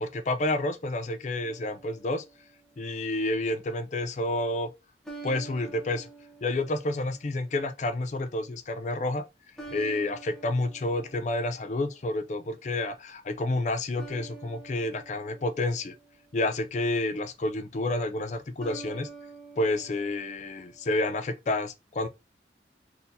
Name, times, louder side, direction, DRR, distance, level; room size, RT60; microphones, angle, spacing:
voice 1, 0.0-2.2 2.8-4.7 5.2-6.1 6.4-9.2 9.7-15.9 16.3-19.1 19.6-22.1, left 2 dB, 40° left, 0.4 m, -29 dB
sound 1, 1.4-2.8 5.0-7.5 9.6-12.2 14.0-16.5 18.6-20.9, right 4 dB, 5° left, 0.8 m, -47 dB
4.0 x 2.7 x 2.6 m
head